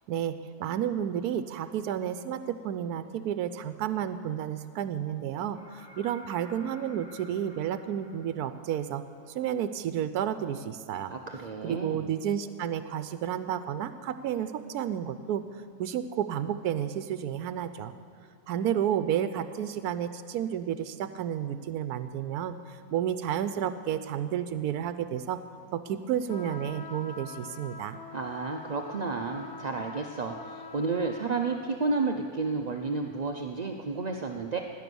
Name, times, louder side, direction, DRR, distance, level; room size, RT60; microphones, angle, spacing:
voice 1, 0.1-9.0 9.3-11.1 11.6-17.9 18.5-25.4 25.7-28.0, right 9 dB, 85° right, 12 dB, 1.1 m, -31 dB
sound 1, 5.5-9.3 11.2-11.3, left 1 dB, 15° right, 1.8 m, -52 dB
voice 2, 11.1-12.1 28.1-34.6, right 3 dB, 50° right, 3 dB, 0.5 m, -31 dB
sound 2, 26.3-31.7, left 4 dB, 50° left, 1.3 m, -45 dB
17.0 x 10.5 x 6.9 m, 2.3 s
omnidirectional pair, 1.6 m